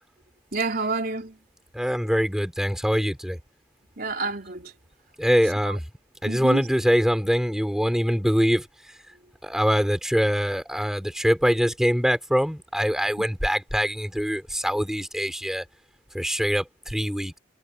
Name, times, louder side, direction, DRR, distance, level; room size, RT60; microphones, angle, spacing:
voice 1, 0.5-1.4 4.0-4.8 5.7-5.8 6.2-6.7 13.2-13.3, right 3 dB, 50° right, 4.1 m, -29 dB
voice 2, 1.7-3.4 5.2-5.8 6.2-9.0 9.4-15.6 16.1-17.4, equal, ahead, 4.9 m, -24 dB
head